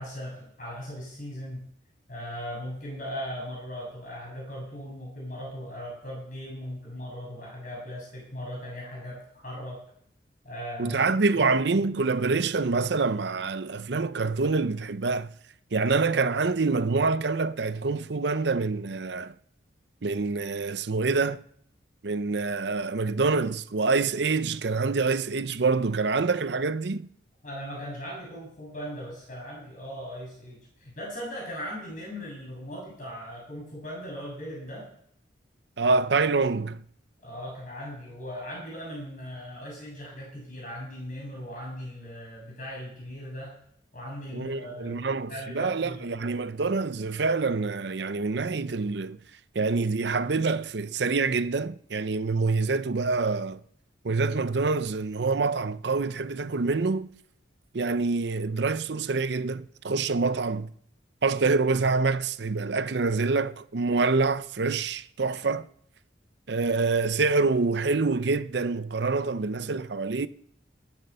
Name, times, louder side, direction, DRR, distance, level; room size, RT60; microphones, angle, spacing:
voice 1, 0.0-1.7 2.1-9.8 10.4-11.0 11.3-11.5 27.4-34.9 37.2-43.6 43.9-46.3, equal, 45° left, 6.7 m, -38 dB
voice 2, 10.8-15.3 15.7-19.3 20.0-21.4 22.0-27.1 35.8-36.8 44.3-49.2 49.5-53.6 54.0-57.1 57.7-60.7 61.2-65.7 66.5-70.3, right 4 dB, 65° right, 0.6 m, -26 dB
19.0 x 7.8 x 6.8 m
head